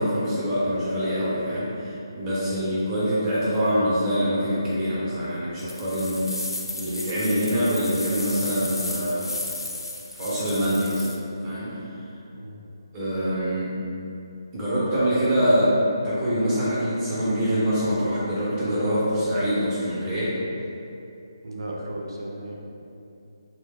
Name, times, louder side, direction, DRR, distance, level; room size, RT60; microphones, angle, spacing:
voice 1, 0.0-6.3 6.7-9.3 10.2-11.1 11.4-11.8 12.9-13.7 14.5-15.7 16.0-20.3, equal, 20° right, -10 dB, 0.8 m, -24 dB
sound 1, 5.6-11.2, left 1 dB, 90° left, 0.4 m, -34 dB
voice 2, 21.4-22.6, right 1 dB, 65° right, -2 dB, 0.5 m, -35 dB
2.7 x 2.1 x 3.6 m, 2.7 s
figure-of-eight pair, 150°, 2 cm